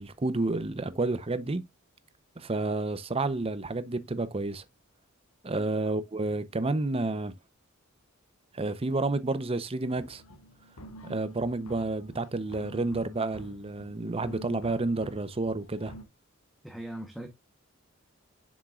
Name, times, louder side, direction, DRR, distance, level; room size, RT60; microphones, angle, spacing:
voice 1, 0.0-1.6 2.4-4.6 5.4-7.3 8.5-10.2 11.0-15.9, right 2 dB, 25° right, 0.6 m, -30 dB
sound 1, 9.9-16.0, equal, 80° left, 1.2 m, -48 dB
voice 2, 16.6-17.3, right 1 dB, ahead, 0.9 m, -40 dB
7.3 x 6.2 x 2.3 m
head